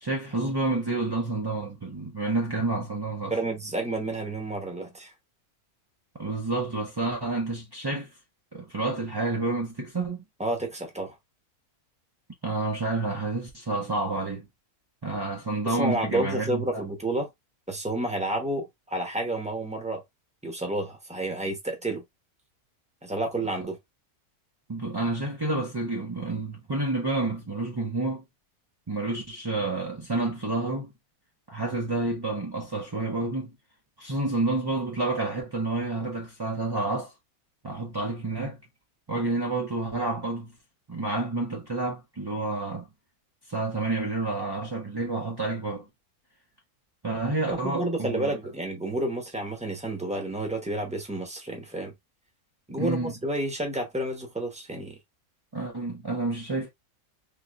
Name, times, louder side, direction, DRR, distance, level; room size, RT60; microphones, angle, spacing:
voice 1, 0.0-3.3 6.2-8.1 8.5-10.2 12.4-14.5 15.0-16.8 24.7-28.2 28.9-30.9 31.5-33.5 34.0-37.1 37.6-38.6 39.1-40.5 40.9-42.9 43.5-45.9 47.0-48.4 52.8-53.1 55.5-56.7, right 2 dB, 40° right, 0.3 m, -29 dB
voice 2, 3.3-5.1 10.4-11.1 15.6-17.3 17.7-20.0 20.4-22.0 23.0-23.8 47.5-51.9 52.7-55.0, right 1 dB, 5° right, 0.6 m, -30 dB
3.7 x 2.7 x 2.4 m
omnidirectional pair, 1.5 m